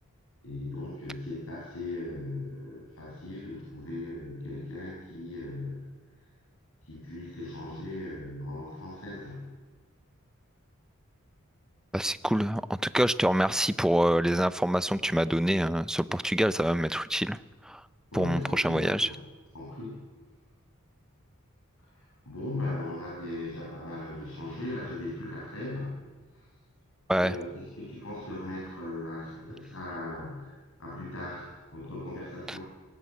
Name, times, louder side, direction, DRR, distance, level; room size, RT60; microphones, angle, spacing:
voice 1, 0.4-5.8 6.8-9.5 18.1-19.2 19.5-20.0 21.8-26.1 26.3-26.5 27.2-32.6, left 2 dB, 85° left, -4 dB, 6.4 m, -38 dB
voice 2, 11.9-17.4 17.7-17.8 18.1-19.1 27.1-27.4 32.5-32.6, equal, 5° right, 15 dB, 0.5 m, -26 dB
18.0 x 17.5 x 9.5 m, 1.4 s
head